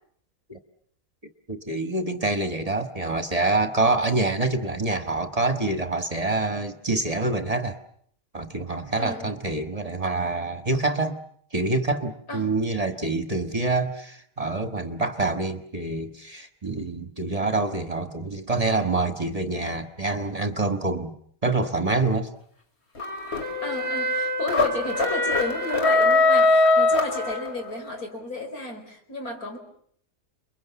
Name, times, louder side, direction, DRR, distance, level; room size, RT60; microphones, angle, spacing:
voice 1, 1.5-7.8 8.3-11.2 11.5-21.1 21.4-22.3, right 2 dB, 25° right, 7 dB, 1.6 m, -26 dB
voice 2, 9.0-9.4 12.3-12.5 23.6-29.6, left 2 dB, 85° left, 4 dB, 5.2 m, -33 dB
sound 1, 23.0-27.8, left 2 dB, 45° left, 3.4 m, -22 dB
29.5 x 22.5 x 7.1 m, 0.64 s
omnidirectional pair, 1.5 m